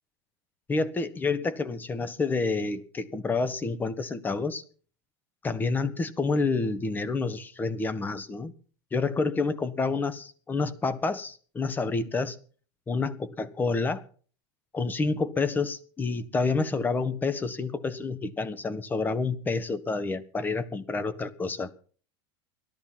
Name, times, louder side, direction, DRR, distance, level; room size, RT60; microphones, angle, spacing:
voice 1, 0.7-4.6 5.4-8.5 8.9-12.4 12.9-14.0 14.7-21.7, left 4 dB, 15° left, 1.3 m, -28 dB
17.0 x 13.0 x 5.9 m
supercardioid pair, 145°, 13 cm